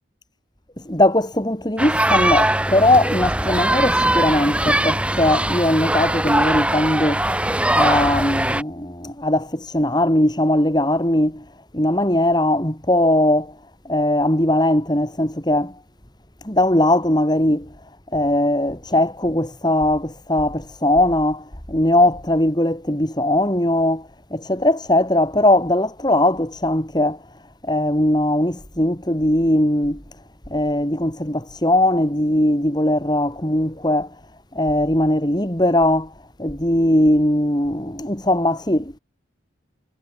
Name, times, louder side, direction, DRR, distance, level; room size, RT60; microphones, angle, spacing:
voice 1, 0.9-7.3 7.8-11.4 11.7-13.5 13.9-15.8 16.4-17.7 18.1-27.2 27.6-30.0 30.5-34.2 34.5-36.1 36.4-39.0, left 1 dB, 20° left, 3.4 m, -19 dB
sound 1, 1.8-8.6, right 1 dB, 5° right, 2.5 m, -21 dB
head